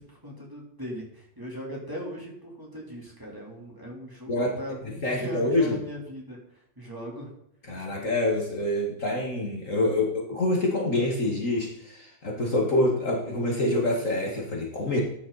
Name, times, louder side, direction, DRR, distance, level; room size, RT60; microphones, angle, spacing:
voice 1, 0.0-7.3, equal, 10° right, -3 dB, 3.9 m, -39 dB
voice 2, 4.3-4.6 5.0-5.8 7.7-15.0, left 1 dB, 45° left, -2 dB, 2.4 m, -26 dB
14.5 x 10.0 x 4.3 m, 0.76 s
omnidirectional pair, 2.0 m